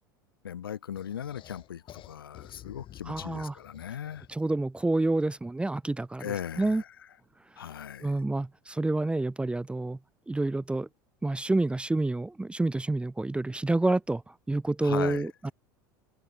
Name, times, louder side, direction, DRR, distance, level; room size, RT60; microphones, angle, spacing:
voice 1, 0.4-4.3 6.2-6.9 7.6-8.1 14.8-15.3, left 9 dB, 90° left, 2.7 m, -38 dB
sound 1, 1.0-4.5, left 12 dB, 45° left, 4.6 m, -50 dB
voice 2, 3.1-3.5 4.3-6.8 8.0-10.0 10.3-10.9 11.2-15.5, right 2 dB, 10° right, 0.8 m, -28 dB
hypercardioid pair, 85°, 12 cm